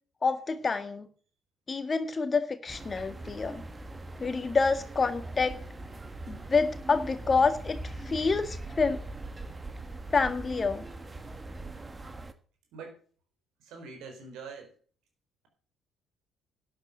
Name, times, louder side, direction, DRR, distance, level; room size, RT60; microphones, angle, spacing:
voice 1, 0.2-1.1 1.7-3.6 4.2-5.5 6.3-9.0 10.1-10.8, left 4 dB, 35° left, 9 dB, 1.8 m, -27 dB
sound 1, 2.7-12.3, right 2 dB, 25° right, 1.6 m, -41 dB
voice 2, 13.6-14.7, right 4 dB, 65° right, 5 dB, 4.2 m, -44 dB
12.0 x 8.9 x 6.7 m, 0.43 s
hypercardioid pair, 50°, 0 cm